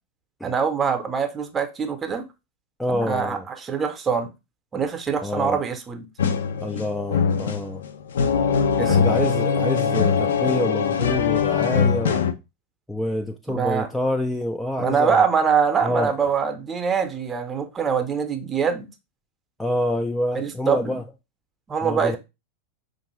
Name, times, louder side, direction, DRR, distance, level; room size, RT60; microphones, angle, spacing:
voice 1, 0.4-2.2 2.9-4.3 4.7-6.1 8.8-9.0 13.5-13.9 14.8-18.9 20.3-21.0 21.7-22.2, right 6 dB, 20° right, 0.7 m, -24 dB
voice 2, 2.8-3.5 5.2-5.6 6.6-7.8 8.8-12.3 12.9-15.2 15.8-16.1 19.6-21.0 21.8-22.2, left 1 dB, 5° left, 0.3 m, -27 dB
sound 1, 6.2-12.3, left 6 dB, 60° left, 0.5 m, -22 dB
5.1 x 2.5 x 3.1 m
figure-of-eight pair, 90°, 0 cm